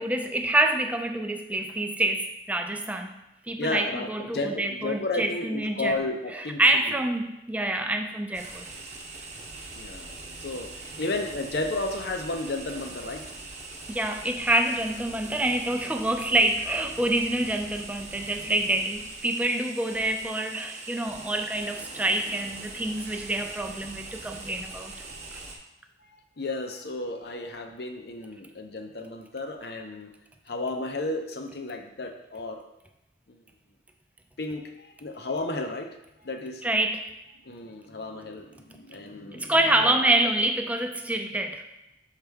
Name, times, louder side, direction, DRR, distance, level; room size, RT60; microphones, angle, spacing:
voice 1, 0.0-3.2 3.5-6.0 6.6-8.7 13.9-24.9 36.6-37.1 39.3-41.6, right 1 dB, 10° right, 4 dB, 0.4 m, -26 dB
voice 2, 3.6-6.6 9.7-13.2 25.0-25.2 26.0-30.1 30.5-32.6 33.3-33.4 34.4-36.0 36.2-36.7 37.4-40.0, left 2 dB, 60° left, 5 dB, 0.7 m, -33 dB
sound 1, 8.3-25.6, right 3 dB, 40° right, 0.9 m, -42 dB
6.5 x 4.9 x 3.5 m, 0.92 s
head